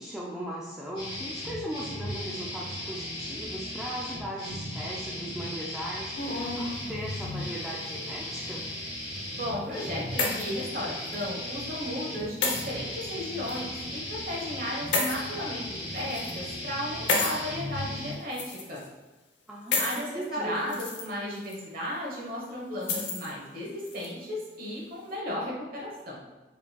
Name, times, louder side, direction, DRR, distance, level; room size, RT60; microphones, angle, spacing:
voice 1, 0.0-8.6 19.5-20.8, equal, 5° right, -5 dB, 0.4 m, -38 dB
sound 1, 1.0-18.1, left 1 dB, 30° left, 1.5 m, -37 dB
sound 2, 6.1-6.8 7.7-8.4 9.6-10.6 11.1-11.2 12.4-12.6 13.5-13.6 14.9-15.2 16.0-16.3 17.1-17.4 18.3-18.9 19.7-20.0 20.6-21.0 21.4-21.6 22.8-23.3 23.9-24.1, left 3 dB, 75° left, 0.7 m, -30 dB
voice 2, 9.3-18.8 19.8-26.2, left 1 dB, 55° right, -3 dB, 1.2 m, -35 dB
4.4 x 3.8 x 2.3 m, 1.2 s
head